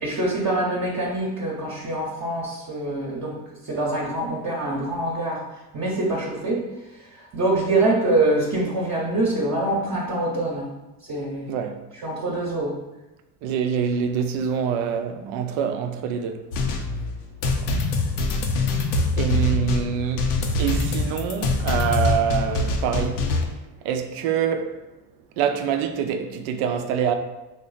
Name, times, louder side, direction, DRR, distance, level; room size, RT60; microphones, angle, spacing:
voice 1, 0.0-3.4 3.6-6.7 7.1-10.7 11.1-11.6 11.9-12.8, right 2 dB, 35° right, 0.8 m, -25 dB
voice 2, 13.4-16.4 17.7-17.8 19.2-23.3 23.8-24.7 25.4-27.1, right 8 dB, 75° right, 0.6 m, -25 dB
sound 1, 16.5-23.5, left 3 dB, 80° left, 0.6 m, -24 dB
3.1 x 2.0 x 3.9 m
supercardioid pair, 80°, 46 cm